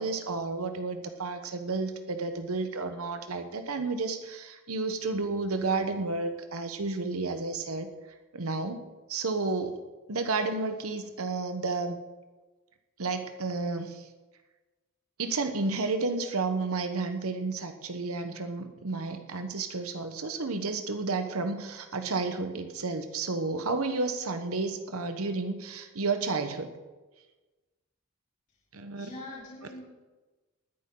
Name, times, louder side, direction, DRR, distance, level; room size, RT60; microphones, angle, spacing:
voice 1, 0.0-7.9 8.3-8.8 9.1-9.8 10.1-12.0 13.0-14.1 15.2-26.7 28.7-29.1, right 3 dB, 90° right, 8 dB, 1.1 m, -31 dB
voice 2, 28.9-29.8, left 2 dB, 35° left, -7 dB, 3.6 m, -43 dB
19.0 x 9.9 x 3.8 m, 1.2 s
head